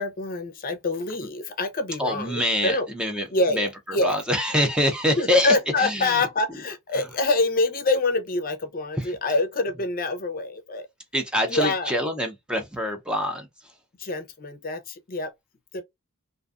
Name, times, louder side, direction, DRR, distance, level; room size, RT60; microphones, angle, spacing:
voice 1, 0.0-2.9 3.3-4.2 5.2-10.9 11.5-11.9 14.0-15.3 15.7-15.8, left 2 dB, 40° left, 0.6 m, -26 dB
voice 2, 2.0-6.3 7.0-7.1 9.0-9.2 11.1-13.7, left 1 dB, 5° right, 0.5 m, -25 dB
2.5 x 2.3 x 2.3 m
head